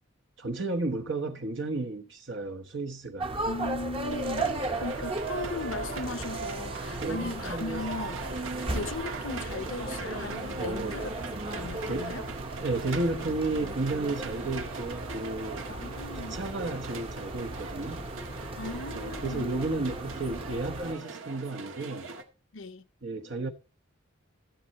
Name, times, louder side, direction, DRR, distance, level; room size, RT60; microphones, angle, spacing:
voice 1, 0.4-3.4 4.4-4.7 7.0-7.3 10.6-11.0 11.9-12.1 12.6-15.7 16.1-18.0 18.9-22.1 23.0-23.5, right 2 dB, 60° right, 1.1 m, -33 dB
sound 1, 3.2-20.9, right 2 dB, 25° right, 0.9 m, -36 dB
voice 2, 3.5-4.5 4.8-11.1 11.5-12.2 15.7-16.3 18.6-19.5 22.5-22.8, left 3 dB, 70° left, 0.9 m, -37 dB
sound 2, 4.1-22.2, right 4 dB, 80° right, 1.7 m, -40 dB
14.5 x 7.6 x 4.2 m
head